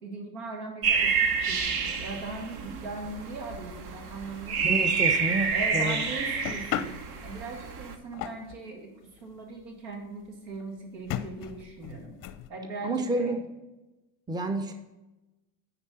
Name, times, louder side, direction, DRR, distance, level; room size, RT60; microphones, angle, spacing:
voice 1, 0.0-5.0 5.5-7.0 7.2-8.9 9.2-12.2 12.5-13.3, right 3 dB, 80° right, 2 dB, 1.9 m, -39 dB
sound 1, 0.8-8.0, right 5 dB, 50° right, 1.0 m, -28 dB
voice 2, 4.6-6.0 12.8-13.4 14.3-14.7, right 2 dB, 10° right, 7 dB, 0.7 m, -29 dB
sound 2, 6.4-8.7 9.3-9.4 9.6-9.7 9.9-10.0 10.5-10.6 11.0-12.5, left 10 dB, 40° left, 0.6 m, -36 dB
9.8 x 3.9 x 6.2 m, 1.1 s
hypercardioid pair, 75°, 50 cm